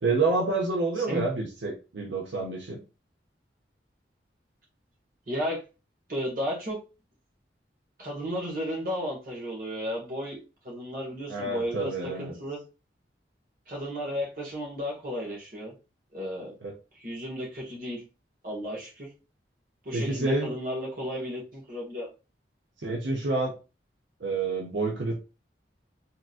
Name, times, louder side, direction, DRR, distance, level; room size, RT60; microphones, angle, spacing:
voice 1, 0.0-2.8 11.3-12.4 16.6-16.7 19.9-20.5 22.8-23.5 24.2-25.1, right 3 dB, 85° right, 0 dB, 0.9 m, -28 dB
voice 2, 5.3-5.6 6.1-6.8 8.0-11.9 12.2-12.6 13.7-15.7 16.1-16.5 16.9-18.0 18.4-19.1 19.8-22.1, equal, 50° right, -2 dB, 1.5 m, -33 dB
3.5 x 3.0 x 2.4 m, 0.30 s
head